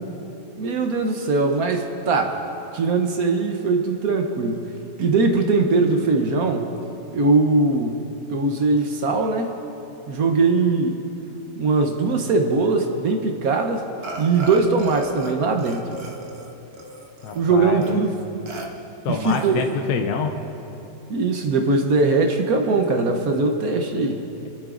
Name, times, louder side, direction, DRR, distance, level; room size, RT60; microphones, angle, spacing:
voice 1, 0.6-2.4 2.7-4.6 5.0-6.6 7.1-8.0 8.3-9.5 10.1-11.0 11.5-13.8 14.2-15.8 17.3-18.1 19.1-19.6 21.1-24.2, right 3 dB, 60° right, 4 dB, 1.2 m, -20 dB
Burping eructation, 14.0-15.3 15.6-17.4 17.8-17.9 18.5-18.7 19.2-19.8, right 2 dB, 40° right, 1.1 m, -36 dB
voice 2, 17.2-18.0 19.0-20.3 24.4-24.5, left 5 dB, 70° left, 4 dB, 1.2 m, -26 dB
28.0 x 10.0 x 2.5 m, 2.9 s
omnidirectional pair, 1.8 m